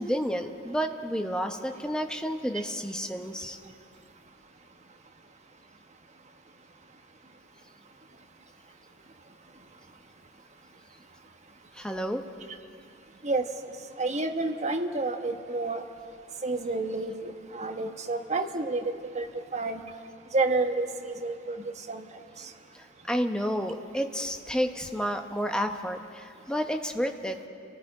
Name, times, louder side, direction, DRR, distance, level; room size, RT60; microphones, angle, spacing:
voice 1, 0.0-3.6 11.8-12.2 23.1-27.5, equal, 5° left, 4 dB, 0.9 m, -30 dB
voice 2, 14.0-15.8 16.4-19.3 19.5-19.8 20.3-22.0 22.4-22.5, right 3 dB, 35° right, 5 dB, 1.2 m, -29 dB
29.5 x 18.0 x 4.9 m, 2.5 s
head